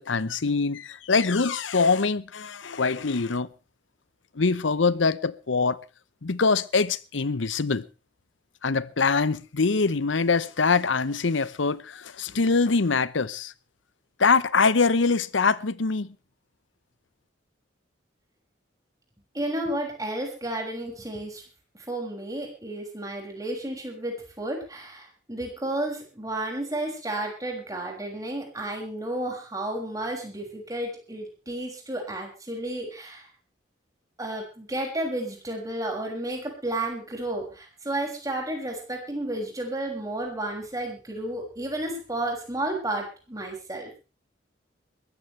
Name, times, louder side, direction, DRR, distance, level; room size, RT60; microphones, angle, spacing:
voice 1, 0.0-3.5 4.3-5.8 6.2-7.9 8.6-13.5 14.2-16.1, left 4 dB, 85° left, 0.8 m, -24 dB
voice 2, 19.3-21.4 21.7-33.3 34.2-44.1, right 1 dB, 20° right, 6.3 m, -32 dB
21.5 x 15.0 x 3.3 m
head